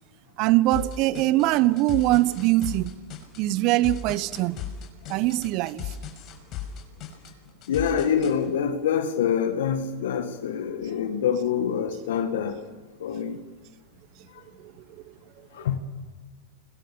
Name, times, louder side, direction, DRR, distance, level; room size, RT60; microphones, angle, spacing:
voice 1, 0.4-2.9 3.4-4.6 5.1-5.9 14.6-14.7, right 17 dB, 45° right, 1.0 m, -22 dB
sound 1, 0.7-8.3, left 9 dB, 40° left, 6.0 m, -36 dB
voice 2, 7.7-12.6 13.0-13.4 14.3-14.4 15.5-15.8, left 8 dB, 70° left, 1.8 m, -26 dB
30.0 x 24.5 x 6.9 m
hypercardioid pair, 105°, 0 cm